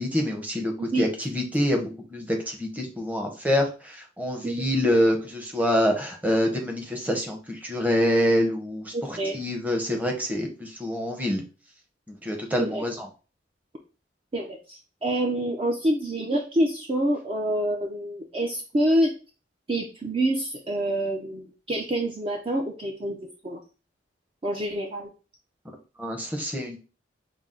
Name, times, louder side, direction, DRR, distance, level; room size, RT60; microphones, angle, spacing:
voice 1, 0.0-11.4 12.1-13.1 26.0-26.8, equal, 10° right, 2 dB, 0.8 m, -26 dB
voice 2, 8.9-9.4 12.6-12.8 14.3-19.1 19.7-23.2 23.4-23.6 24.4-25.1, right 1 dB, 30° right, 1 dB, 0.5 m, -27 dB
5.7 x 2.0 x 3.7 m, 0.34 s
head